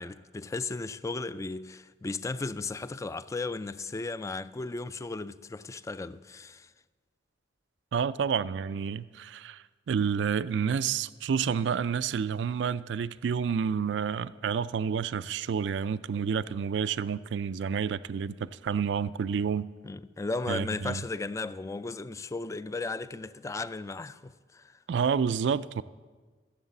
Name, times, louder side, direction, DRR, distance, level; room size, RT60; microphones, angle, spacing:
voice 1, 0.0-6.7 19.8-24.8, left 3 dB, 15° left, 0.3 m, -35 dB
voice 2, 7.9-19.7 20.5-21.0 24.9-25.8, right 6 dB, 75° right, 0.3 m, -29 dB
15.0 x 7.3 x 7.0 m
head